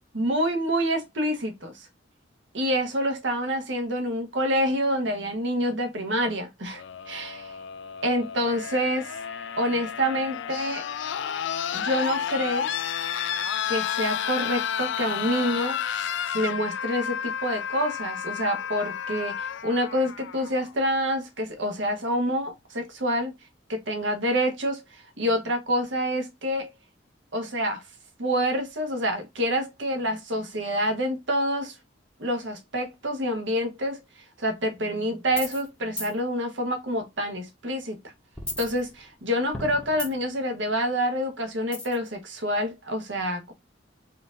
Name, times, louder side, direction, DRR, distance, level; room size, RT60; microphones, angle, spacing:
voice 1, 0.1-1.9 2.5-7.5 8.0-9.1 9.6-10.8 11.7-12.7 13.7-16.1 16.3-23.3 23.7-26.7 27.3-27.8 28.2-31.7 32.2-34.0 34.4-38.0 38.6-43.5, equal, 70° right, 1.2 m, -27 dB
sound 1, 6.7-20.7 21.9-22.0, left 8 dB, 65° left, 0.4 m, -31 dB
sound 2, 35.3-35.7 36.0-36.1 38.4-39.2 39.5-40.4 41.7-42.1, left 2 dB, 5° left, 0.9 m, -35 dB
4.4 x 2.6 x 3.6 m
head